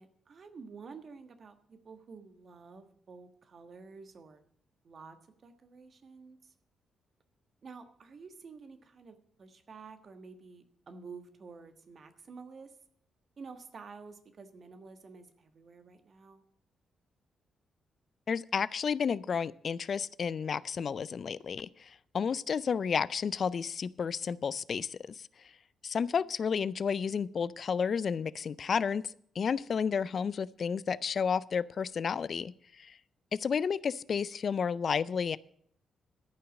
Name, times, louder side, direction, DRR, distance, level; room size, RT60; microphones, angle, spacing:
voice 1, 0.0-4.4 4.8-5.2 5.4-6.5 7.6-12.7 13.4-16.4, right 4 dB, 55° right, 8 dB, 1.4 m, -50 dB
voice 2, 18.3-25.2 25.8-29.0 29.4-32.5 32.8-33.0 33.3-35.4, left 6 dB, 55° left, 19 dB, 0.4 m, -31 dB
13.5 x 5.7 x 7.3 m, 0.65 s
hypercardioid pair, 45°, 0 cm